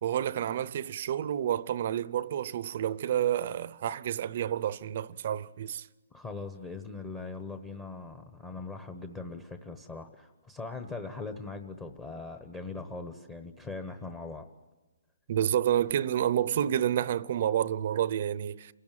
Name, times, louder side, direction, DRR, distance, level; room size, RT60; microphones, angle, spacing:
voice 1, 0.0-5.9 15.3-18.7, right 10 dB, 45° right, 0.7 m, -29 dB
voice 2, 6.1-14.5, left 3 dB, 15° left, 1.1 m, -40 dB
28.5 x 17.0 x 9.1 m
hypercardioid pair, 160°, 0 cm